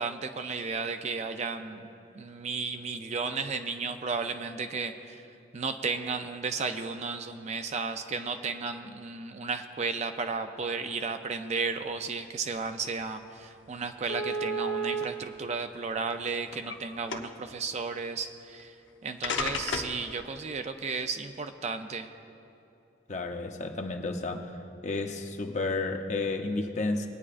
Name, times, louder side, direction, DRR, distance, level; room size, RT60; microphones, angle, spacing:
voice 1, 0.0-5.3 5.5-18.8 19.0-22.1, right 4 dB, 35° right, 7 dB, 0.4 m, -34 dB
sound 1, 13.4-13.5 14.1-15.0 15.9-16.8 17.1-17.5 18.6-18.7 19.2-20.0, equal, 85° left, 0.8 m, -32 dB
voice 2, 23.1-24.6 24.8-27.1, left 3 dB, 40° left, 4 dB, 0.8 m, -31 dB
20.5 x 9.5 x 2.5 m, 2.9 s
head